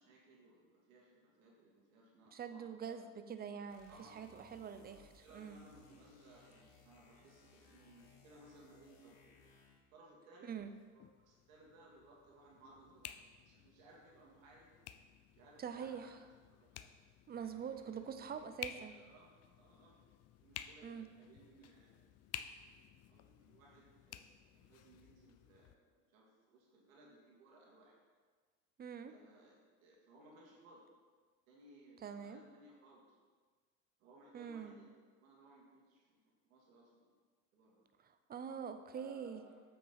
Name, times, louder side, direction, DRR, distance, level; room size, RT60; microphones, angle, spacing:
voice 1, 0.0-3.1 3.9-9.4 9.9-10.5 10.9-15.1 15.3-16.1 16.5-16.9 17.4-20.0 20.4-22.1 22.8-24.3 24.5-28.0 29.0-30.9 31.5-33.2 34.0-34.9 35.2-37.1 37.5-37.8 38.9-39.6, right 2 dB, 85° right, -3 dB, 2.2 m, -62 dB
voice 2, 2.3-5.6 10.4-10.7 15.6-16.2 17.3-19.0 20.8-21.1 28.8-29.1 32.0-32.4 34.3-34.7 38.0-39.4, right 7 dB, 25° right, 9 dB, 0.6 m, -45 dB
sound 1, 3.7-9.9, left 4 dB, 65° left, 1.5 m, -65 dB
sound 2, 10.6-25.7, left 10 dB, 40° left, 0.5 m, -54 dB
8.1 x 6.0 x 4.0 m, 1.5 s
hypercardioid pair, 90°, 40 cm